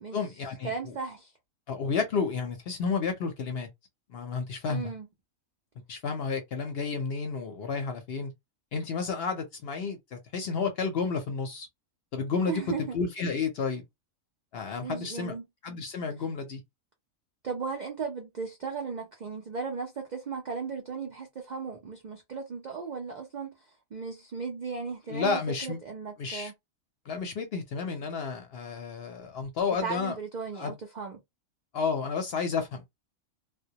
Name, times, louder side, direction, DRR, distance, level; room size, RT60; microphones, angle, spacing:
voice 1, 0.1-0.9 1.7-3.7 4.1-4.9 5.9-8.3 8.7-11.7 12.1-12.6 12.9-13.8 14.5-15.3 15.6-16.6 25.1-25.8 26.2-26.5 27.1-30.2 30.6-30.8 31.7-32.8, left 5 dB, 60° left, 0.7 m, -31 dB
voice 2, 0.6-1.3 4.7-5.1 12.5-13.0 14.8-15.5 17.4-23.5 23.9-26.5 29.8-31.2, right 5 dB, 75° right, 0.4 m, -36 dB
2.2 x 2.1 x 2.7 m
omnidirectional pair, 1.4 m